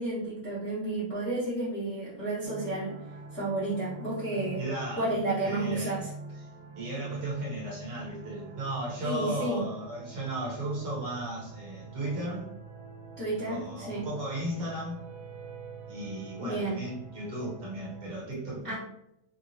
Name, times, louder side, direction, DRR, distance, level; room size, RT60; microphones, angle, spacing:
voice 1, 0.0-3.0 3.3-4.6 5.0-6.1 9.0-9.6 13.2-14.1 16.4-16.8 18.6-18.8, right 2 dB, 45° left, -10 dB, 1.0 m, -31 dB
sound 1, 2.4-18.1, right 4 dB, 80° right, 1.7 m, -45 dB
voice 2, 4.3-5.1 5.4-6.0 6.7-12.5 13.5-15.0 15.9-18.8, right 1 dB, 60° right, -5 dB, 1.7 m, -35 dB
6.0 x 2.3 x 2.7 m, 0.81 s
omnidirectional pair, 3.3 m